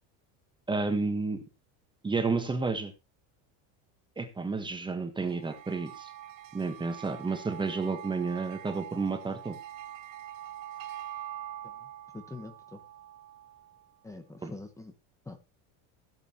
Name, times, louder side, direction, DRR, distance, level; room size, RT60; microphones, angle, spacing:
voice 1, 0.7-1.4 2.0-2.9 4.2-6.1 6.5-9.6 14.4-14.5, right 4 dB, 10° right, 7 dB, 1.4 m, -31 dB
sound 1, 5.2-13.8, right 12 dB, 50° right, 1.6 m, -44 dB
voice 2, 12.1-12.8 14.0-14.9 15.2-15.4, left 2 dB, 5° left, 8 dB, 1.3 m, -44 dB
17.0 x 8.0 x 3.0 m, 0.28 s
cardioid pair, 160°, 42 cm